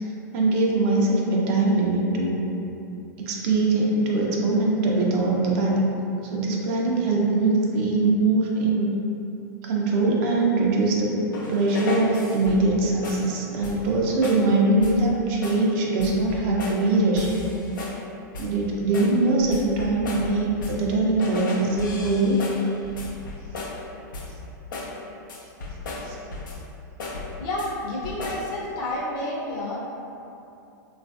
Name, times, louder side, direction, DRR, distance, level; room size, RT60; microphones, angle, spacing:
voice 1, 0.3-2.4 3.2-5.8 6.2-9.0 9.6-11.1 11.5-17.3 18.4-22.4 26.0-26.2, right 2 dB, 50° right, -2 dB, 0.5 m, -22 dB
sound 1, 11.3-12.7 13.0-13.3 13.6-13.9 14.2-14.5 14.8-15.1 15.4-15.7 16.0-16.9 17.2-18.0 18.3-18.6 18.9-20.9 21.2-23.8 24.1-24.4 24.7-25.0 25.3-26.7 27.0-27.7 28.0-28.5, left 2 dB, 85° left, 0.5 m, -35 dB
voice 2, 27.4-29.9, left 1 dB, 40° left, -5 dB, 0.7 m, -30 dB
3.1 x 2.4 x 2.4 m, 2.7 s
hypercardioid pair, 125°, 10 cm